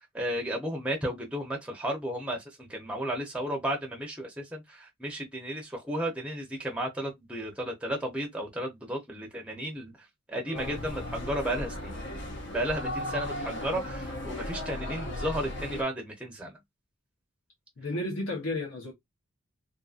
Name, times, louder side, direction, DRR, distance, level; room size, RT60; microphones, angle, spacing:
voice 1, 0.1-9.9 10.3-12.0 12.5-16.6, right 1 dB, 5° right, 0.6 m, -33 dB
voice 2, 10.5-10.8 13.3-13.6 17.8-18.9, left 2 dB, 75° left, 0.9 m, -34 dB
sound 1, 10.5-15.8, left 1 dB, 55° left, 0.6 m, -36 dB
2.6 x 2.6 x 2.4 m
head